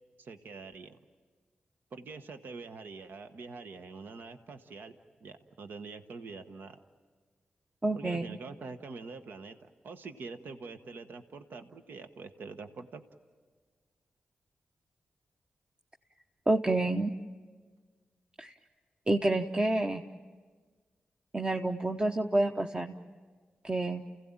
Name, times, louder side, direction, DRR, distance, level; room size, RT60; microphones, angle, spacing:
voice 1, 0.2-1.0 1.9-5.0 5.2-6.8 7.9-9.6 9.8-13.0, right 4 dB, 75° right, 8 dB, 1.0 m, -45 dB
voice 2, 7.8-8.4 16.5-17.1 18.4-18.5 19.1-20.0 21.3-23.0 23.6-24.0, right 2 dB, 25° right, 3 dB, 1.1 m, -28 dB
29.5 x 16.5 x 8.9 m, 1.5 s
supercardioid pair, 45°, 4 cm